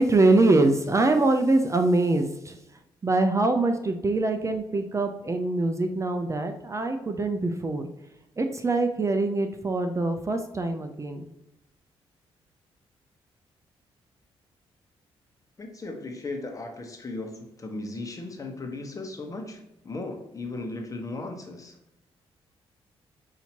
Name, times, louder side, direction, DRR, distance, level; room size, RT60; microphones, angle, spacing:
voice 1, 0.0-2.6 3.0-7.8 8.4-11.3, right 2 dB, 30° right, 6 dB, 0.5 m, -24 dB
voice 2, 15.6-21.8, left 2 dB, 30° left, 3 dB, 1.1 m, -36 dB
5.7 x 2.8 x 2.8 m, 0.90 s
cardioid pair, 70°, 11 cm